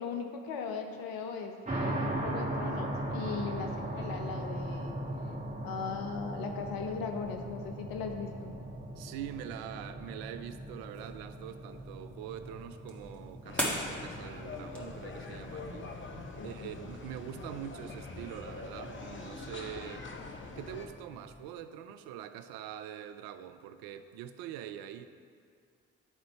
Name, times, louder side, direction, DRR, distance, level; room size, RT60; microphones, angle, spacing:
voice 1, 0.0-4.9 5.6-8.5 16.4-16.7, left 5 dB, 70° left, 4 dB, 0.8 m, -38 dB
sound 1, 1.6-21.4, right 1 dB, 20° right, 1.9 m, -40 dB
voice 2, 9.0-15.9 16.4-20.1 20.6-25.1, right 10 dB, 75° right, 10 dB, 0.5 m, -44 dB
sound 2, 10.7-15.8, equal, 5° left, 1.9 m, -41 dB
sound 3, 13.4-20.9, left 3 dB, 30° left, 0.8 m, -44 dB
10.0 x 3.8 x 4.4 m, 2.2 s
hypercardioid pair, 40°, 36 cm